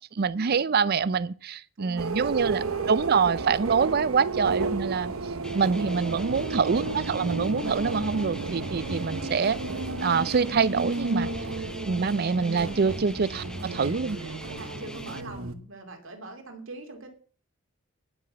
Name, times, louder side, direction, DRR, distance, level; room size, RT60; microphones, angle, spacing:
voice 1, 0.2-5.1 5.5-9.6 10.0-11.3 11.8-14.2, right 5 dB, 45° right, 0.5 m, -25 dB
voice 2, 1.8-2.9 14.5-17.1, right 3 dB, 65° right, 2.5 m, -43 dB
sound 1, 2.0-15.5, right 3 dB, 80° right, 1.1 m, -32 dB
sound 2, 5.4-15.2, left 1 dB, 5° left, 0.5 m, -43 dB
10.5 x 6.0 x 7.7 m
head